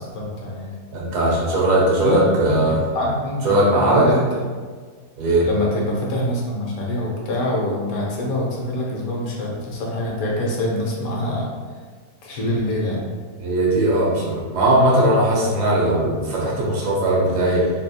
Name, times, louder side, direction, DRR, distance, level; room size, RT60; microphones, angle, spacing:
voice 1, 0.1-0.7 2.0-4.2 5.4-11.5 12.2-13.1, left 1 dB, 70° left, -3 dB, 1.1 m, -25 dB
voice 2, 0.9-2.8 3.4-4.1 5.2-5.5 13.4-17.7, right 1 dB, 85° right, -4 dB, 1.4 m, -19 dB
3.5 x 2.4 x 2.7 m, 1.5 s
omnidirectional pair, 1.6 m